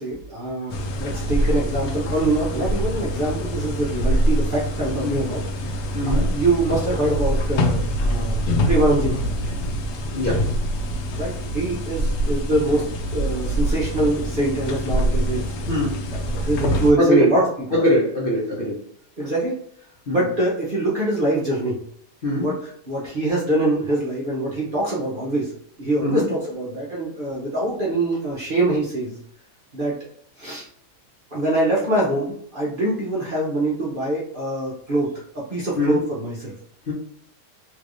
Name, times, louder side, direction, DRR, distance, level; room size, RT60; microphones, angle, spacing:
voice 1, 0.0-5.4 6.0-9.4 11.2-15.8 16.2-17.5 19.2-19.6 20.1-21.8 22.3-25.5 25.8-29.2 29.7-30.0 30.4-30.6 31.3-36.5, right 1 dB, 40° right, -6 dB, 0.8 m, -24 dB
sound 1, 0.7-16.9, equal, 70° left, 1.0 m, -24 dB
voice 2, 5.9-6.3 10.1-10.4 15.7-16.0 17.0-17.3 17.7-18.8 20.1-20.2 22.2-22.5 26.0-26.3 35.8-36.0 36.9-37.0, left 1 dB, 45° left, -6 dB, 0.8 m, -21 dB
3.2 x 3.1 x 2.5 m, 0.64 s
omnidirectional pair, 1.8 m